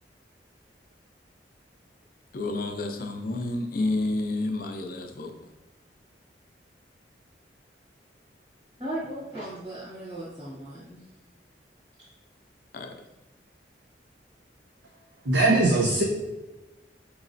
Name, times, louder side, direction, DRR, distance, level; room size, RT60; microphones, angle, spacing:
voice 1, 2.3-5.3 12.7-12.9, left 2 dB, 55° left, 4 dB, 0.5 m, -30 dB
voice 2, 8.8-11.0 12.0-12.1, right 1 dB, 30° right, -10 dB, 1.3 m, -37 dB
voice 3, 15.3-16.0, right 2 dB, 85° right, -1 dB, 0.6 m, -20 dB
4.7 x 3.1 x 2.6 m, 1.1 s
head